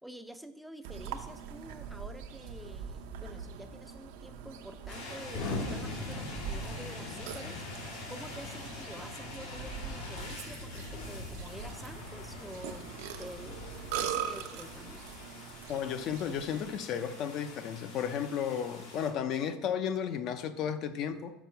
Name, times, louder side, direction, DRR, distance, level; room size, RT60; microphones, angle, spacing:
voice 1, 0.0-12.9 13.2-13.7 13.9-15.0, equal, ahead, 9 dB, 0.5 m, -48 dB
Burping eructation, 0.8-16.8, right 8 dB, 80° right, 0.7 m, -42 dB
sound 1, 4.9-19.1, left 2 dB, 85° left, 2.8 m, -46 dB
Explosion, 5.3-15.3, left 3 dB, 65° left, 1.4 m, -43 dB
voice 2, 15.7-21.3, left 8 dB, 50° left, 10 dB, 0.6 m, -33 dB
6.2 x 5.1 x 5.7 m, 0.91 s
supercardioid pair, 130°, 0 cm